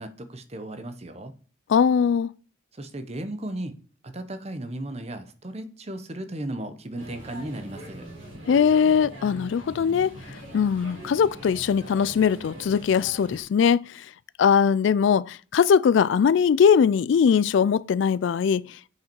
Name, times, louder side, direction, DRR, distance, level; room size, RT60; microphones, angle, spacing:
voice 1, 0.0-1.3 2.7-3.7 4.0-8.0, right 1 dB, 30° right, 0.8 m, -35 dB
voice 2, 1.7-2.3 8.5-10.1 10.5-14.0 14.4-18.6, left 7 dB, 65° left, 0.3 m, -21 dB
sound 1, 7.0-13.4, right 1 dB, 75° right, 5.1 m, -42 dB
7.9 x 5.8 x 4.5 m
head